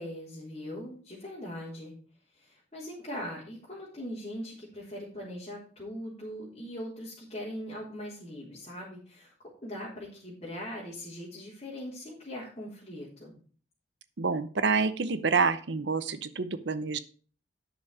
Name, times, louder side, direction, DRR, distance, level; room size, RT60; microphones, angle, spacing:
voice 1, 0.0-1.9 2.4-9.3 9.6-13.3, equal, 30° left, -8 dB, 3.8 m, -40 dB
voice 2, 14.2-17.0, right 4 dB, 65° right, 13 dB, 0.7 m, -27 dB
10.0 x 6.7 x 4.9 m, 0.41 s
head